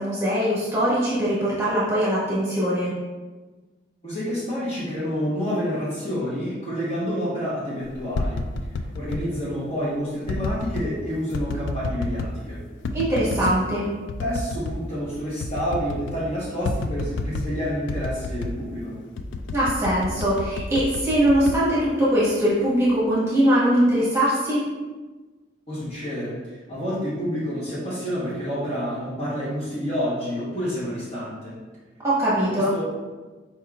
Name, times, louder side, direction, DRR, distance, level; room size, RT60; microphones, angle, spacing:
voice 1, 0.0-2.9 12.9-13.9 19.5-24.7 32.0-32.7, right 1 dB, 15° right, -9 dB, 1.3 m, -21 dB
voice 2, 4.0-8.4 8.9-12.6 14.2-19.0 25.7-26.4 26.7-31.6 32.3-32.8, equal, 30° left, -8 dB, 1.0 m, -28 dB
sound 1, 7.9-9.3 10.3-10.9 11.3-12.4 12.8-13.6 14.1-14.8 15.1-15.2 15.4-16.2 16.6-17.6 17.9-18.6 19.2-22.3 22.7-23.1, left 2 dB, 65° left, 0.3 m, -30 dB
4.4 x 4.2 x 2.4 m, 1.3 s
head